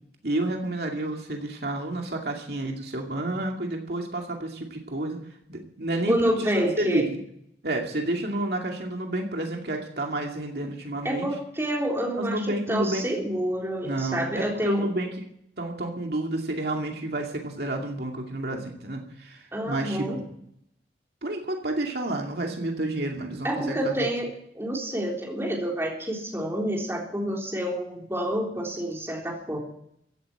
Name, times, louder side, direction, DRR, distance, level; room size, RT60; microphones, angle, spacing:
voice 1, 0.2-5.2 5.5-7.2 7.6-11.3 12.2-13.1 13.8-15.1 15.6-20.3 21.2-24.1, right 1 dB, 65° right, 2 dB, 2.4 m, -30 dB
voice 2, 6.1-7.0 11.0-14.9 19.5-20.2 23.4-29.6, right 1 dB, 15° right, -1 dB, 3.7 m, -28 dB
15.5 x 8.4 x 8.8 m, 0.72 s
head